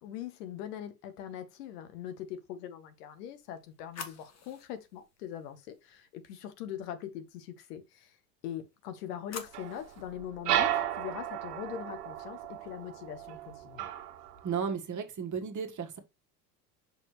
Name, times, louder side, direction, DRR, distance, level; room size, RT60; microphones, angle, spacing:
voice 1, 0.0-8.2 8.4-13.9, left 10 dB, 75° left, 1.5 m, -42 dB
sound 1, 3.1-6.2 8.6-10.1, left 5 dB, 35° left, 1.8 m, -49 dB
sound 2, 9.5-14.6, right 11 dB, 80° right, 1.4 m, -34 dB
voice 2, 14.4-16.0, right 6 dB, 40° right, 1.7 m, -34 dB
6.2 x 5.6 x 3.2 m
hypercardioid pair, 80°, 47 cm